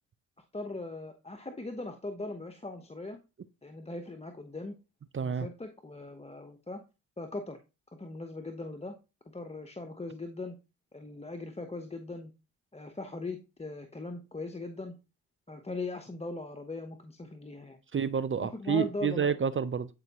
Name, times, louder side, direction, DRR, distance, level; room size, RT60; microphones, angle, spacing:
voice 1, 0.5-3.2 3.6-4.7 5.2-6.8 7.2-7.6 7.9-8.9 9.3-10.6 10.9-12.3 12.7-15.0 15.5-17.8 18.4-19.3, left 2 dB, 15° left, 1.0 m, -39 dB
voice 2, 5.1-5.5 17.9-19.9, right 6 dB, 30° right, 0.6 m, -29 dB
9.5 x 4.5 x 3.0 m
hypercardioid pair, 40°, 39 cm